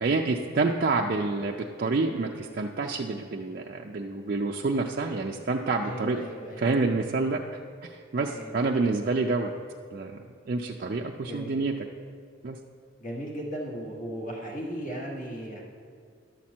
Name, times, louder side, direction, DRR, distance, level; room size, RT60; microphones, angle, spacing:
voice 1, 0.0-6.2 6.6-9.5 9.9-11.7 12.4-12.6, right 3 dB, 45° right, 0 dB, 0.4 m, -28 dB
voice 2, 5.8-6.9 8.3-8.6 11.3-11.6 13.0-15.6, right 1 dB, 45° left, -2 dB, 1.5 m, -37 dB
11.5 x 4.4 x 7.2 m, 2.2 s
head